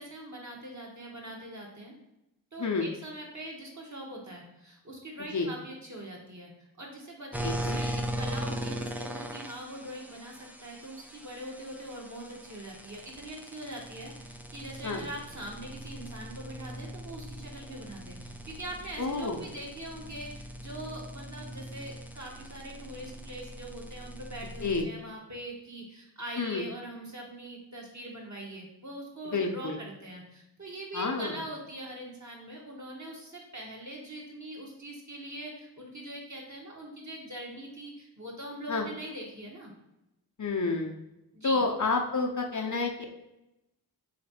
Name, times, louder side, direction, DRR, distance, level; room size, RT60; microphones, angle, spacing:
voice 1, 0.0-1.9 2.5-6.5 6.8-39.7 41.3-41.6, right 1 dB, 40° right, -2 dB, 1.4 m, -42 dB
sound 1, 7.3-24.8, right 1 dB, 5° right, 0.5 m, -40 dB
voice 2, 7.4-7.8 14.8-15.0 19.0-19.4 24.6-24.9 26.4-26.6 29.3-29.8 30.9-31.4 38.7-38.9 40.4-41.0 41.4-43.1, left 3 dB, 45° left, 1 dB, 0.6 m, -29 dB
3.6 x 3.3 x 4.1 m, 0.90 s
cardioid pair, 50°, 43 cm